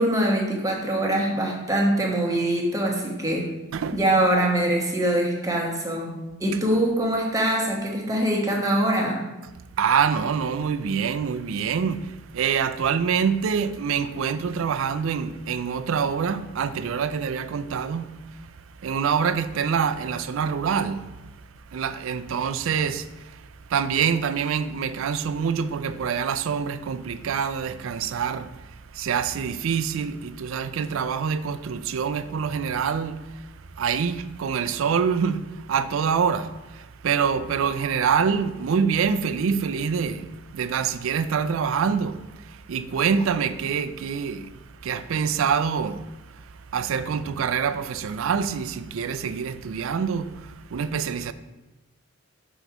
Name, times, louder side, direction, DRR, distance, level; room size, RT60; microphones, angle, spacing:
voice 1, 0.0-3.5 3.9-9.2, right 1 dB, 15° right, 1.1 m, -23 dB
voice 2, 9.8-18.4 18.8-21.2 21.7-33.4 33.8-44.5 44.8-46.1 46.4-46.5 46.7-51.3, right 6 dB, 65° right, 0.4 m, -26 dB
6.1 x 4.0 x 5.9 m
head